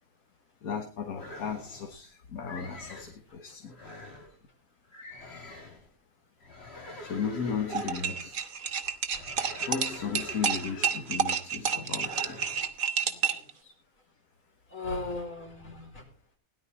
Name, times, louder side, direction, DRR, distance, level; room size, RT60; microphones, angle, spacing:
voice 1, 0.6-3.8 7.0-8.5 9.6-12.5, left 6 dB, 85° left, 6 dB, 1.7 m, -35 dB
sound 1, 1.2-2.0 2.4-3.2 3.7-4.3 4.9-5.9 6.4-8.4 9.1-11.3 11.9-12.7, left 2 dB, 45° left, 3.1 m, -45 dB
sound 2, 7.7-13.5, right 6 dB, 75° right, 1.7 m, -30 dB
voice 2, 8.9-9.4 12.9-13.7 14.7-16.0, left 3 dB, 70° left, 0 dB, 5.0 m, -39 dB
17.5 x 11.0 x 4.1 m, 0.37 s
omnidirectional pair, 1.5 m